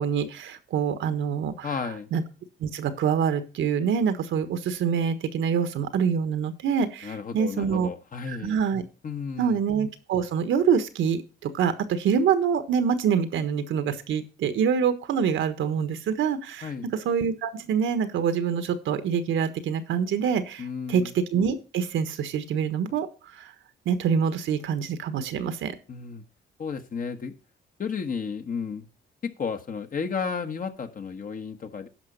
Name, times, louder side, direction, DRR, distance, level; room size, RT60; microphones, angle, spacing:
voice 1, 0.0-1.7 2.1-2.2 2.6-7.9 8.3-8.8 9.4-16.7 17.0-21.0 21.3-23.1 23.4-23.5 23.8-25.7, right 7 dB, 75° right, 11 dB, 1.4 m, -25 dB
voice 2, 1.6-2.1 7.0-8.6 9.0-9.6 16.6-16.9 20.6-21.1 25.9-26.2 26.6-27.3 27.8-28.9 29.2-31.9, left 5 dB, 45° left, 7 dB, 1.4 m, -33 dB
10.5 x 5.7 x 5.3 m, 0.33 s
cardioid pair, 90°, 20 cm